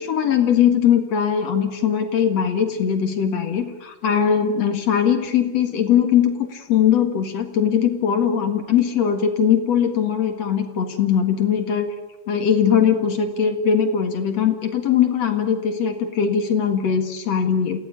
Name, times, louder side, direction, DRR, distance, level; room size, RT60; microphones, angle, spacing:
voice 1, 0.0-11.9 12.3-17.8, left 8 dB, 50° left, 6 dB, 2.3 m, -20 dB
28.0 x 17.0 x 8.8 m, 1.1 s
omnidirectional pair, 4.9 m